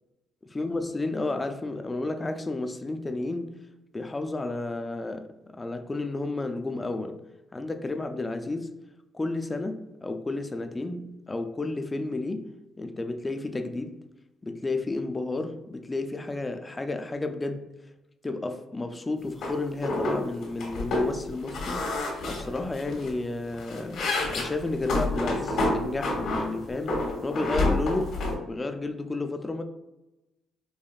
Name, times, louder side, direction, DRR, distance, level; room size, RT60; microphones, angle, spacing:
voice 1, 0.5-3.6 3.9-7.2 7.5-8.7 9.1-12.5 12.8-14.0 14.4-17.7 18.2-21.9 22.3-29.6, left 2 dB, 20° left, 0.4 m, -32 dB
sound 1, 19.4-19.5 19.8-20.2 20.4-21.1 21.5-23.1 23.5-26.5 26.9-28.3, left 2 dB, 70° left, 1.1 m, -28 dB
4.7 x 2.5 x 2.4 m
cardioid pair, 90°, 0 cm